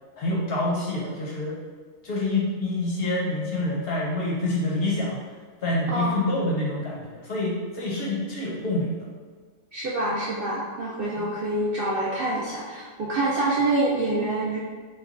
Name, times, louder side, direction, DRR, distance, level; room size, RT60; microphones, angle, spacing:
voice 1, 0.2-1.6 2.0-5.2 5.6-8.9, left 2 dB, 60° left, -4 dB, 0.7 m, -27 dB
voice 2, 9.7-14.6, right 2 dB, 65° right, -5 dB, 0.5 m, -26 dB
3.1 x 2.2 x 3.7 m, 1.5 s
omnidirectional pair, 1.4 m